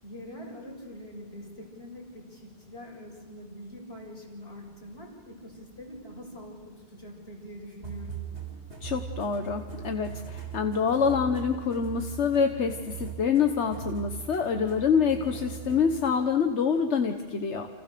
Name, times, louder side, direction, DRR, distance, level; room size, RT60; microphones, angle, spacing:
voice 1, 0.0-8.2, equal, 60° left, -1 dB, 7.3 m, -44 dB
sound 1, 7.8-15.9, right 7 dB, 80° right, 4.6 m, -40 dB
voice 2, 8.8-17.7, left 6 dB, 90° left, 6 dB, 1.5 m, -26 dB
29.5 x 29.0 x 6.9 m, 1.4 s
omnidirectional pair, 1.1 m